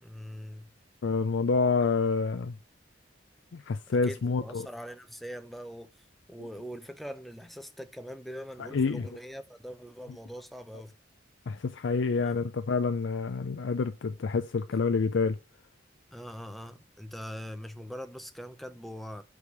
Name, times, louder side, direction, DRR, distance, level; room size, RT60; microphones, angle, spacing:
voice 1, 0.0-0.7 4.0-5.9 6.3-10.9 12.2-12.4 16.1-19.2, equal, ahead, 0.6 m, -42 dB
voice 2, 1.0-2.6 3.5-4.7 8.6-9.1 11.5-15.4, left 4 dB, 75° left, 0.5 m, -28 dB
5.1 x 4.9 x 5.0 m
head